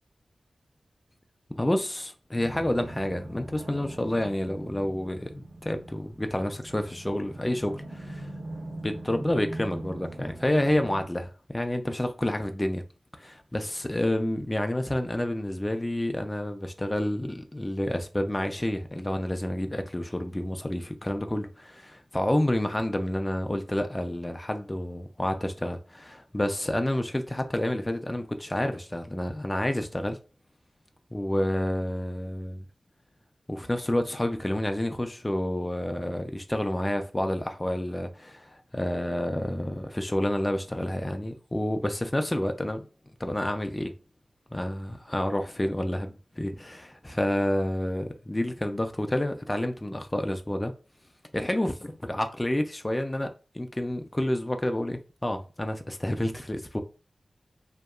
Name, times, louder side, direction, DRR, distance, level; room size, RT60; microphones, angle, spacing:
voice 1, 1.6-8.3 8.8-12.8 13.2-30.2 31.1-32.7 33.5-42.9 43.2-43.9 44.5-50.7 51.3-56.8, left 1 dB, 15° left, 0.3 m, -29 dB
sound 1, 2.3-11.0, right 1 dB, 60° right, 0.8 m, -41 dB
2.7 x 2.2 x 2.2 m
wide cardioid pair, 70°, 0 cm